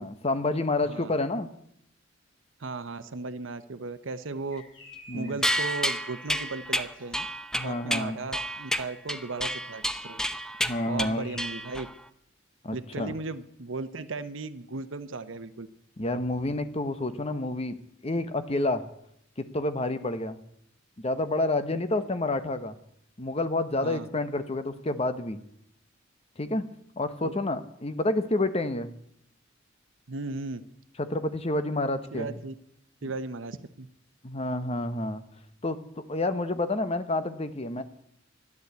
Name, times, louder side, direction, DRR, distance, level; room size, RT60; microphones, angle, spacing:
voice 1, 0.0-1.5 5.1-5.4 7.5-8.2 10.6-11.3 12.6-13.1 16.0-17.8 18.0-18.8 19.5-20.4 21.0-22.7 23.2-25.4 26.4-26.6 27.0-28.9 31.0-32.3 33.0-33.1 34.2-35.2 35.6-35.8 36.1-37.8, left 2 dB, 30° left, 10 dB, 1.0 m, -29 dB
voice 2, 0.8-1.1 2.6-4.6 5.1-7.3 7.6-10.2 10.9-11.9 12.7-15.7 23.8-24.1 27.2-27.3 30.1-30.6 32.1-32.5 33.0-33.9, right 3 dB, 75° right, 12 dB, 0.9 m, -36 dB
sound 1, 4.5-7.2 10.5-11.6, left 3 dB, 70° left, 4.0 m, -51 dB
sound 2, 5.4-12.0, equal, 5° left, 0.6 m, -30 dB
13.5 x 11.0 x 8.2 m, 0.74 s
head